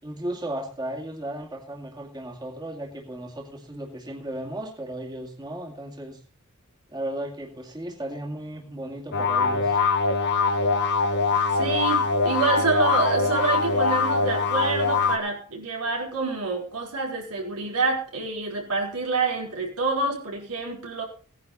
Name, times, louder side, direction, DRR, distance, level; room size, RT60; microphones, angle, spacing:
voice 1, 0.0-6.2 6.9-9.8, right 1 dB, 20° right, -1 dB, 2.3 m, -35 dB
sound 1, 9.1-15.2, left 4 dB, 50° left, 1.6 m, -23 dB
voice 2, 11.5-21.0, right 3 dB, 90° right, -1 dB, 5.0 m, -27 dB
17.5 x 9.9 x 4.1 m, 0.39 s
head